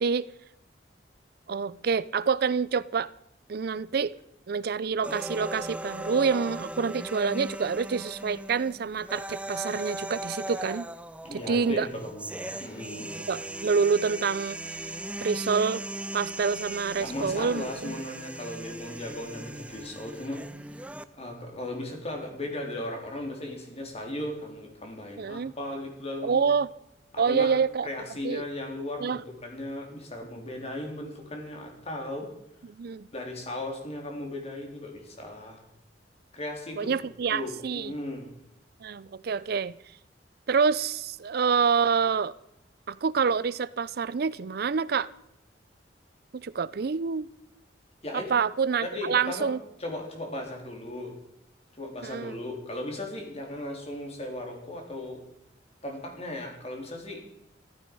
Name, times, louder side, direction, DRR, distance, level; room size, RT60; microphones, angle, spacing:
voice 1, 1.5-3.1 3.5-4.1 4.5-10.9 11.3-11.9 13.3-14.6 15.2-15.8 16.1-18.0 25.2-25.5 26.2-26.7 27.2-27.9 28.2-28.5 29.0-29.2 32.8-33.1 36.8-37.9 38.8-39.7 40.5-42.3 42.9-45.1 46.3-47.3 48.1-49.6 52.0-52.4, right 5 dB, 60° right, 0.5 m, -27 dB
sound 1, 5.0-21.0, right 1 dB, 5° right, 0.6 m, -38 dB
voice 2, 11.2-13.2 17.0-20.4 21.2-26.5 27.1-27.5 27.8-32.3 33.1-35.6 36.3-37.0 37.3-38.3 48.0-48.3 48.8-49.5 49.8-51.1 51.8-55.2 55.8-57.2, left 1 dB, 35° left, 3.7 m, -36 dB
14.5 x 13.5 x 5.4 m
head